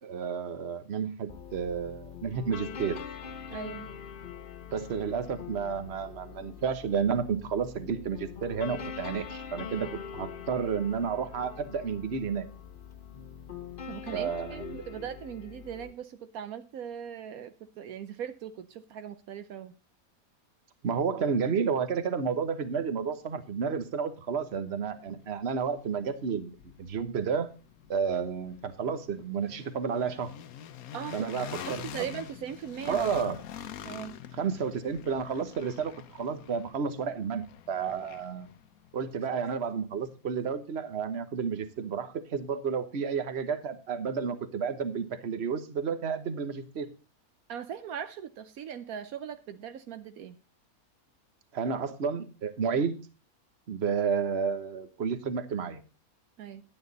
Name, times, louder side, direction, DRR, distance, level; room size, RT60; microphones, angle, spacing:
voice 1, 0.0-3.0 4.7-12.5 14.1-15.0 20.8-27.5 27.9-30.3 31.1-32.1 32.9-33.4 34.4-38.5 38.9-46.9 51.5-53.0 53.7-55.8, right 6 dB, 50° right, 1.3 m, -31 dB
sound 1, 1.3-15.9, left 7 dB, 40° left, 0.9 m, -43 dB
voice 2, 3.5-3.9 13.9-19.7 30.9-33.1 33.8-34.2 47.5-50.4 56.4-56.6, right 8 dB, 75° right, 1.2 m, -40 dB
sound 2, 23.9-24.0 24.5-40.4, left 9 dB, 80° left, 1.2 m, -46 dB
11.0 x 9.5 x 4.0 m
omnidirectional pair, 1.5 m